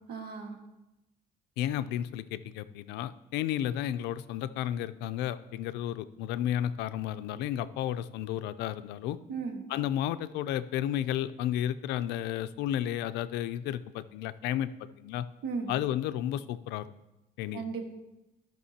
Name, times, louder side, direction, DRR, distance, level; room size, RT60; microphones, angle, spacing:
voice 1, 0.1-0.6 9.3-9.6 15.4-15.7 17.5-17.8, right 5 dB, 75° right, 3 dB, 1.6 m, -35 dB
voice 2, 1.6-9.2 9.7-15.3 15.7-16.9 17.4-17.7, left 11 dB, 90° left, 14 dB, 0.4 m, -32 dB
15.5 x 6.0 x 2.8 m, 0.94 s
cardioid pair, 110°, 17 cm